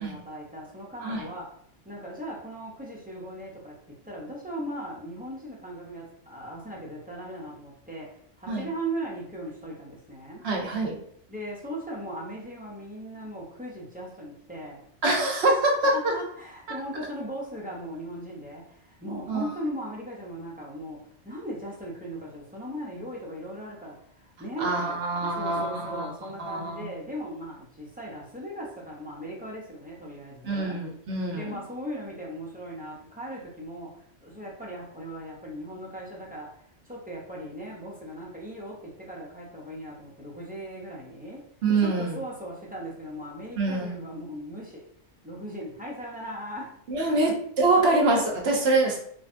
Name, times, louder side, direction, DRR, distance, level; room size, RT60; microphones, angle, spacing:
voice 1, 0.0-1.5 1.8-10.4 11.3-14.9 15.8-30.8 31.4-41.4 41.8-44.9 45.2-46.8 47.1-47.2, right 1 dB, 15° right, -5 dB, 0.3 m, -38 dB
voice 2, 10.4-11.0 15.0-16.1 19.3-19.5 24.6-26.1 26.4-26.9 30.4-31.6 41.6-42.2 43.6-44.0 46.9-49.0, right 2 dB, 65° right, 0 dB, 0.9 m, -25 dB
3.2 x 2.1 x 2.5 m, 0.63 s
omnidirectional pair, 1.3 m